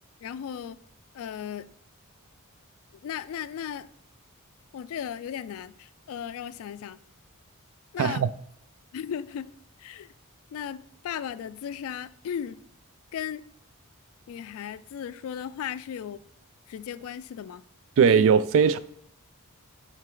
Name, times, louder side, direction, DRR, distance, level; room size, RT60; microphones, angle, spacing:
voice 1, 0.2-0.8 1.1-1.7 3.0-3.9 4.7-7.0 7.9-8.3 8.9-9.5 9.8-10.1 10.5-12.6 13.1-13.4 14.3-16.2 16.7-17.6 18.1-18.4, left 8 dB, 65° left, 0.3 m, -36 dB
voice 2, 8.0-8.3 18.0-18.8, right 6 dB, 60° right, 0.3 m, -19 dB
7.6 x 3.3 x 3.7 m
head